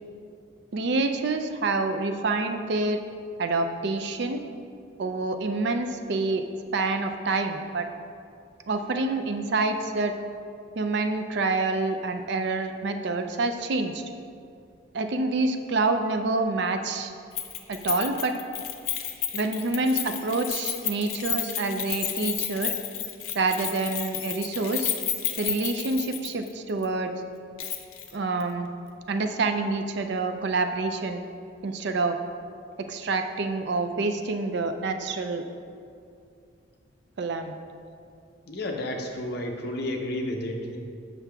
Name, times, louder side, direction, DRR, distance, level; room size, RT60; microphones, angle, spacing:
voice 1, 0.7-3.0 3.4-4.4 5.0-6.5 6.7-7.9 8.7-10.2 10.8-14.0 14.9-17.1 17.7-18.4 19.3-22.7 23.3-24.9 25.4-27.1 28.1-28.7 29.1-31.2 31.6-32.2 32.8-35.4 37.2-37.5, right 3 dB, 55° right, 7 dB, 0.4 m, -27 dB
Keys jangling, 17.4-26.5 26.8-26.9 27.6-28.1 28.4-28.5, left 10 dB, 85° left, 0.6 m, -31 dB
voice 2, 38.5-40.8, left 1 dB, 50° left, 2 dB, 0.7 m, -31 dB
7.3 x 5.8 x 3.4 m, 2.4 s
head